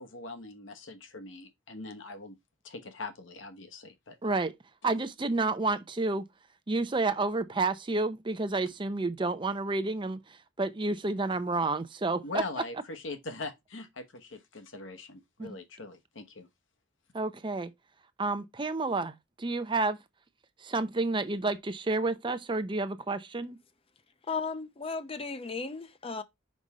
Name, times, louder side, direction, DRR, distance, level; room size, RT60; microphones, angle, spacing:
voice 1, 0.0-2.4 2.6-4.2 12.2-16.5, left 3 dB, 85° left, 1.1 m, -41 dB
voice 2, 4.2-4.5 4.8-6.3 6.7-10.2 10.6-12.4 15.4-15.5 17.1-17.7 18.2-20.0 20.6-23.6, right 3 dB, 25° right, 0.6 m, -30 dB
voice 3, 24.3-26.2, left 4 dB, 30° left, 0.7 m, -35 dB
5.3 x 4.9 x 4.1 m
head